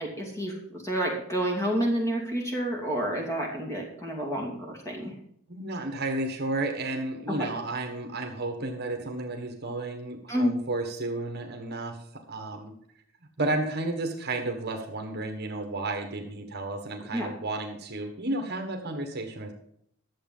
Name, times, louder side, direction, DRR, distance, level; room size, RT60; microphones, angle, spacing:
voice 1, 0.0-5.1 7.3-7.4 10.3-10.5 17.1-17.3, equal, 15° left, 0 dB, 2.6 m, -29 dB
voice 2, 5.5-12.0 12.3-12.7 13.4-19.5, right 2 dB, 50° right, 4 dB, 1.4 m, -32 dB
11.5 x 7.5 x 5.5 m, 0.70 s
head